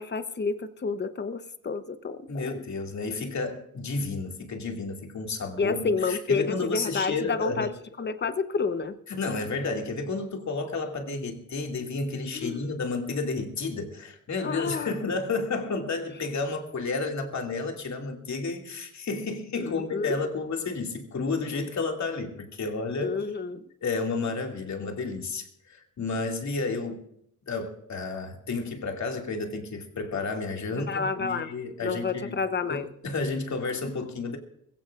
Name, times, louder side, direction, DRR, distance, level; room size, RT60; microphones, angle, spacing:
voice 1, 0.0-2.6 5.6-7.7 8.0-8.9 12.3-12.7 14.4-14.9 19.6-20.2 23.0-23.6 30.9-31.5 31.8-32.9, left 4 dB, 30° left, 11 dB, 0.9 m, -29 dB
voice 2, 2.3-7.7 9.1-23.2 23.8-27.0 27.5-32.4 32.7-34.4, left 3 dB, 55° left, 2 dB, 2.4 m, -31 dB
22.0 x 15.5 x 2.5 m, 0.73 s
wide cardioid pair, 160°, 33 cm